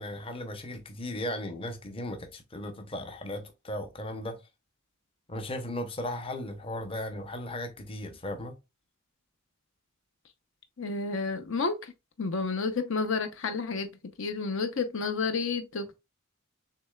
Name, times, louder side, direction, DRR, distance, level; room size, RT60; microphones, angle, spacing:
voice 1, 0.0-4.4 5.3-8.6, left 1 dB, 25° left, 0.7 m, -36 dB
voice 2, 10.8-11.9 12.2-13.9 14.2-16.0, left 4 dB, 65° left, 0.7 m, -30 dB
6.7 x 3.2 x 2.3 m
head